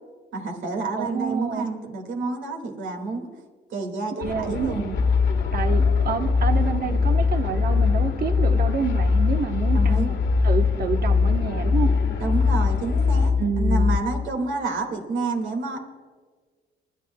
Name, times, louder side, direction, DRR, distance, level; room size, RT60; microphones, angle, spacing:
voice 1, 0.3-3.3 3.7-4.8 9.7-10.1 12.2-15.8, right 3 dB, 75° right, 4 dB, 2.1 m, -29 dB
voice 2, 1.0-1.7 4.2-5.0 5.5-10.2 10.4-11.9 13.4-14.0, right 6 dB, 50° right, 6 dB, 1.1 m, -28 dB
sound 1, 4.2-13.3, left 5 dB, 70° left, 1.5 m, -32 dB
sound 2, 5.0-14.0, left 5 dB, 10° left, 0.4 m, -21 dB
29.5 x 11.0 x 2.3 m, 1.5 s
cardioid pair, 90°, 20 cm